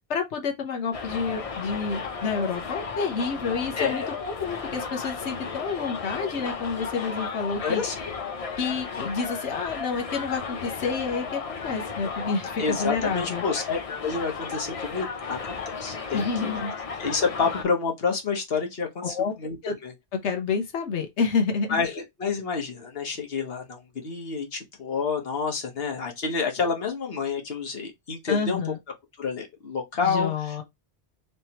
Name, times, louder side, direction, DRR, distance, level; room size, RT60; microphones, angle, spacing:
voice 1, 0.1-7.8 8.6-13.5 16.1-16.7 19.0-19.3 19.6-19.8 20.2-21.8 28.3-28.8 30.0-30.6, left 5 dB, 85° left, 1.2 m, -29 dB
Subway metro underground, 0.9-17.6, left 5 dB, 45° left, 0.5 m, -34 dB
voice 2, 3.8-4.1 7.6-8.1 12.6-16.5 17.0-19.6 19.8-19.9 21.7-28.6 29.2-30.6, left 5 dB, 60° left, 1.3 m, -29 dB
3.3 x 3.1 x 2.8 m
omnidirectional pair, 1.1 m